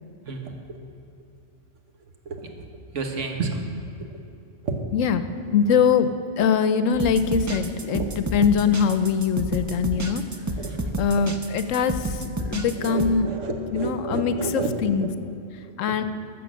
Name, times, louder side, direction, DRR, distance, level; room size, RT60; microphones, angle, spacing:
voice 1, 0.3-0.8 2.2-2.5 2.9-3.6 4.6-4.7 7.8-8.0 10.6-11.0 12.8-14.7, right 3 dB, 70° right, 3 dB, 1.5 m, -30 dB
voice 2, 4.9-10.2 11.0-13.3 13.7-15.1 15.8-16.0, left 6 dB, 85° left, 10 dB, 1.0 m, -23 dB
sound 1, 6.9-13.1, right 1 dB, 30° right, 0.3 m, -30 dB
15.0 x 6.4 x 6.3 m, 2.6 s
omnidirectional pair, 1.3 m